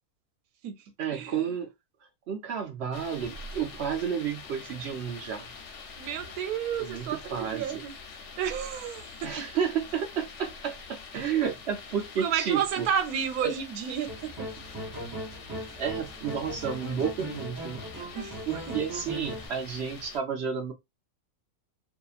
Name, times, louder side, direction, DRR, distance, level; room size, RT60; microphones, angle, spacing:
voice 1, 1.0-1.7 2.3-5.5 6.8-7.1 7.3-7.8 9.2-12.9 13.4-13.5 15.8-17.8 18.5-20.7, right 7 dB, 65° right, 0.7 m, -31 dB
sound 1, 2.9-20.2, left 4 dB, 65° left, 0.9 m, -45 dB
voice 2, 6.0-7.9 8.4-9.4 12.2-14.3 18.1-18.4 18.7-18.8, right 8 dB, 85° right, 1.1 m, -31 dB
sound 2, 14.1-19.5, right 1 dB, 30° right, 0.4 m, -38 dB
2.7 x 2.4 x 2.4 m
omnidirectional pair, 1.5 m